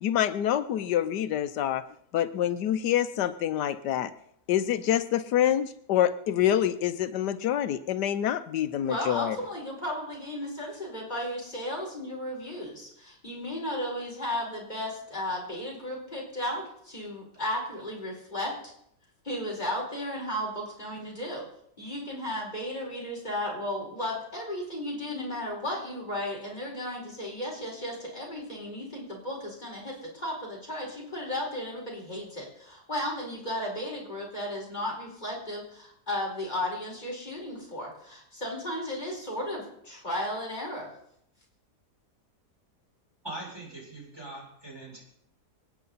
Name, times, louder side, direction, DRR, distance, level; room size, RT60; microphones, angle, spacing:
voice 1, 0.0-1.8 2.1-4.1 4.5-9.4, left 11 dB, 90° left, 11 dB, 1.4 m, -26 dB
voice 2, 8.8-18.7 19.2-21.5 21.8-40.9, left 1 dB, 25° left, -3 dB, 4.6 m, -34 dB
voice 3, 43.2-45.0, right 2 dB, 15° right, -5 dB, 6.8 m, -41 dB
26.5 x 9.5 x 4.1 m, 0.72 s
omnidirectional pair, 1.8 m